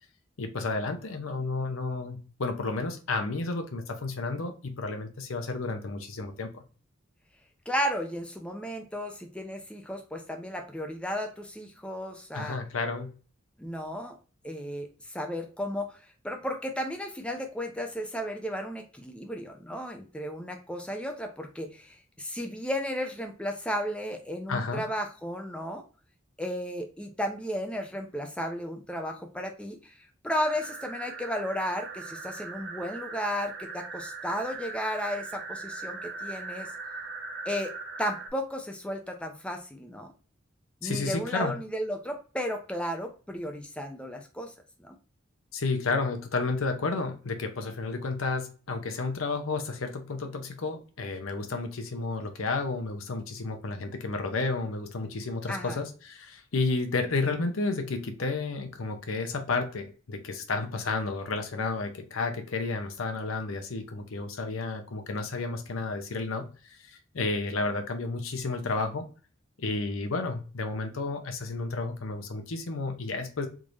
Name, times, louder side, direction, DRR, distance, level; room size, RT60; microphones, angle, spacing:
voice 1, 0.4-6.6 12.3-13.1 24.5-24.8 40.8-41.5 45.5-69.0 69.6-73.5, left 3 dB, 85° left, 5 dB, 0.7 m, -31 dB
voice 2, 7.7-12.6 13.6-14.2 14.4-16.0 16.2-25.8 26.4-29.9 30.2-36.7 37.5-37.7 38.0-40.1 40.8-44.5 44.8-45.0 55.5-55.8, equal, 5° left, 4 dB, 0.5 m, -34 dB
sound 1, 30.4-38.3, right 3 dB, 55° right, 0.9 m, -40 dB
3.6 x 2.6 x 3.1 m, 0.37 s
head